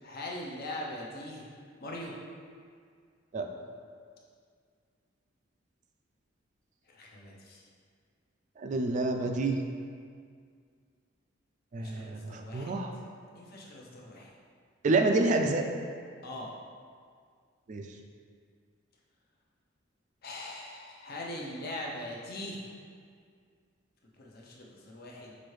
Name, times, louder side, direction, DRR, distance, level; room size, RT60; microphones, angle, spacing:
voice 1, 0.0-1.5 1.8-2.1 6.9-7.6 11.8-12.8 13.3-14.3 16.2-16.5 20.2-22.6 24.2-25.3, left 1 dB, 50° left, -2 dB, 0.7 m, -41 dB
voice 2, 8.6-9.6 11.7-12.9 14.8-15.6 17.7-17.8, right 3 dB, 40° right, 4 dB, 0.3 m, -28 dB
6.0 x 2.7 x 3.1 m, 2.1 s
head